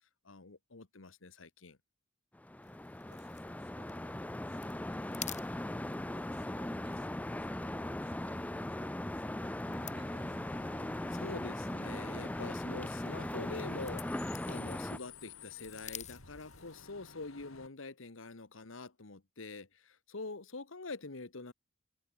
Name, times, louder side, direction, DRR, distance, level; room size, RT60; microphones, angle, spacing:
voice 1, 0.2-1.8 11.1-21.5, left 3 dB, 70° left, 1.4 m, -45 dB
sound 1, 2.3-15.0, left 1 dB, 5° left, 0.4 m, -39 dB
sound 2, 2.6-17.0, left 10 dB, 35° left, 4.4 m, -53 dB
voice 2, 2.7-5.3 5.8-9.6 9.9-10.6, right 3 dB, 60° right, 6.7 m, -64 dB
Bus / Idling / Screech, 9.7-17.7, left 5 dB, 90° left, 3.6 m, -54 dB
head